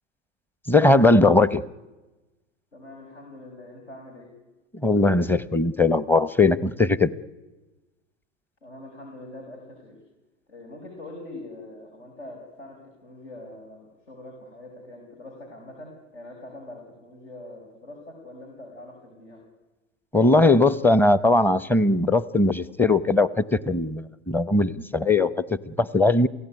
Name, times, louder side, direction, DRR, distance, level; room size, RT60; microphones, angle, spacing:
voice 1, 0.7-1.6 4.8-7.1 20.1-26.3, left 2 dB, 5° left, 19 dB, 0.8 m, -19 dB
voice 2, 2.7-4.3 8.6-10.0 10.5-19.4, left 2 dB, 75° left, 1 dB, 6.4 m, -43 dB
28.0 x 17.0 x 9.5 m, 1.1 s
hypercardioid pair, 95°, 35 cm